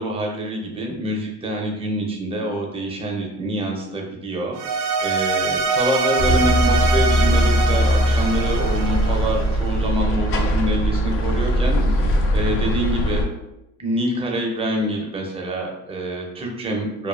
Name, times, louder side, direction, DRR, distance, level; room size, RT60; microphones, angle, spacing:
voice 1, 0.0-13.2 13.8-17.1, right 1 dB, 20° right, 0 dB, 0.5 m, -26 dB
sound 1, 4.5-9.9, right 5 dB, 90° right, 0.5 m, -24 dB
sound 2, 6.2-13.2, equal, 45° left, 0.4 m, -20 dB
2.4 x 2.3 x 2.3 m, 0.88 s
cardioid pair, 120°, 32 cm